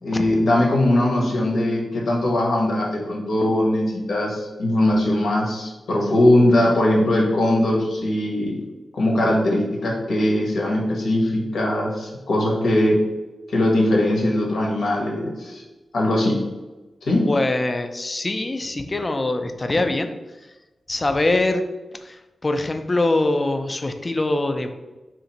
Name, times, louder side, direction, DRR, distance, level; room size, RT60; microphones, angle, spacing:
voice 1, 0.0-8.6 8.9-13.0 13.5-15.6 15.9-16.4 17.0-17.3, left 1 dB, 90° left, -1 dB, 0.8 m, -20 dB
voice 2, 17.3-20.1 20.9-21.6 22.0-24.7, left 2 dB, 30° left, 7 dB, 0.4 m, -23 dB
2.8 x 2.5 x 4.0 m, 1.1 s
cardioid pair, 75°, 0 cm